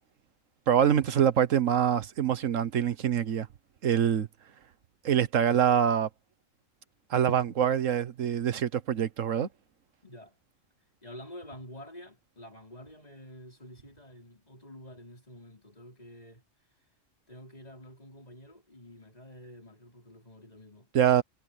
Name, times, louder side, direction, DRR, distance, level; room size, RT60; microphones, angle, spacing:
voice 1, 0.7-3.5 3.8-4.3 5.0-6.1 7.1-9.5 20.9-21.2, right 9 dB, 80° right, 1.4 m, -25 dB
voice 2, 10.0-10.4 11.0-16.4 17.3-20.9, equal, 30° left, 5.1 m, -48 dB
omnidirectional pair, 1.3 m